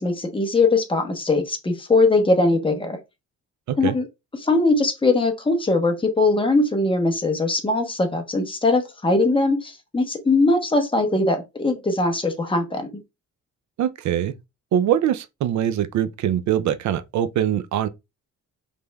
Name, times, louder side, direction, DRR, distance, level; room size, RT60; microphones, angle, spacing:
voice 1, 0.0-3.0 3.8-4.0 4.4-12.9, left 2 dB, 15° left, 0.9 m, -21 dB
voice 2, 13.8-14.3 14.7-17.9, right 10 dB, 70° right, 0.4 m, -23 dB
5.2 x 3.3 x 2.2 m
cardioid pair, 135°, 30 cm